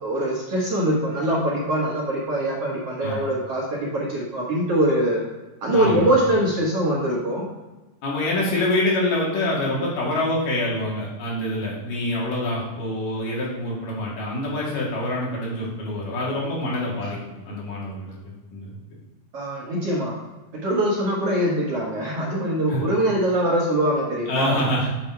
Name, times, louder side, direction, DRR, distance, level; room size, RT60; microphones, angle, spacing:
voice 1, 0.0-5.2 5.6-7.5 17.0-17.1 19.3-20.2 20.5-24.6, right 1 dB, 55° right, -5 dB, 1.9 m, -23 dB
voice 2, 5.7-6.1 8.0-17.2 17.5-18.1 18.5-18.8 22.7-22.8 24.3-24.9, left 1 dB, 75° left, -5 dB, 3.6 m, -26 dB
8.7 x 3.9 x 4.5 m, 1.1 s
omnidirectional pair, 3.9 m